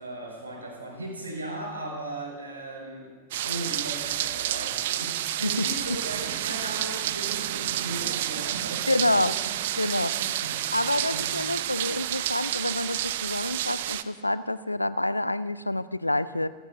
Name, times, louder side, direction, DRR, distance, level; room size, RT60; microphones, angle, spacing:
voice 1, 0.0-3.1 3.4-9.6 9.9-11.3, right 1 dB, 75° right, -1 dB, 5.9 m, -37 dB
sound 1, 3.3-14.0, right 13 dB, 55° right, 0.6 m, -30 dB
voice 2, 8.9-9.3 9.8-10.1 10.7-16.5, left 1 dB, 85° left, 16 dB, 0.5 m, -27 dB
29.0 x 16.0 x 2.7 m, 1.3 s
figure-of-eight pair, 90°, 0 cm